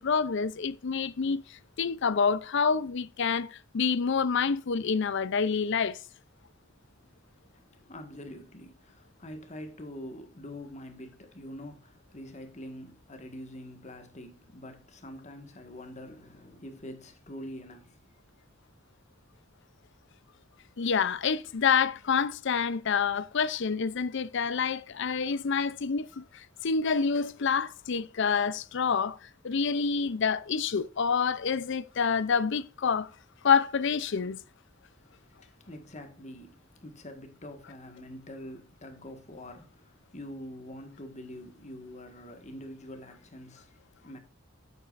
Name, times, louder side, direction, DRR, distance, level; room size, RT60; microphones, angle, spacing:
voice 1, 0.0-1.4 1.8-3.5 3.7-6.0 20.8-26.2 26.6-29.2 29.4-33.1 33.4-34.4, left 6 dB, 65° left, 0.6 m, -27 dB
voice 2, 6.8-18.1 35.0-44.2, left 1 dB, 35° left, 1.6 m, -45 dB
8.7 x 8.2 x 2.5 m
head